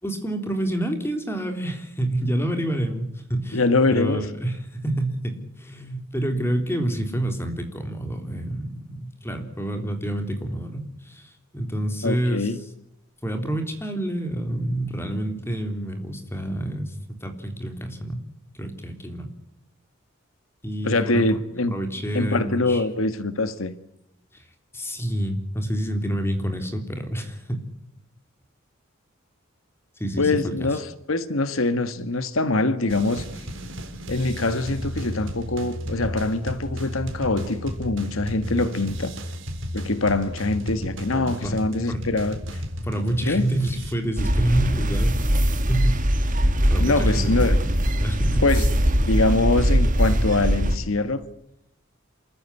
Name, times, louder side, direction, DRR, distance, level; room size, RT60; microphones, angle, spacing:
voice 1, 0.0-12.5 13.2-18.2 18.6-19.3 20.6-21.3 21.7-22.8 24.7-27.7 30.0-30.7 41.1-41.6 41.9-42.0 42.8-45.2 45.7-46.0 46.7-48.4, right 1 dB, 10° left, 3.5 m, -28 dB
voice 2, 3.5-4.2 12.0-12.6 20.8-21.7 22.1-23.7 30.2-33.2 34.1-39.1 39.7-42.4 43.2-43.5 46.8-47.6 48.4-48.6 49.1-51.3, left 2 dB, 75° left, 1.6 m, -23 dB
sound 1, 32.9-43.9, equal, 60° right, 4.0 m, -34 dB
sound 2, 44.2-50.8, equal, 40° right, 2.3 m, -21 dB
27.5 x 14.5 x 9.7 m
head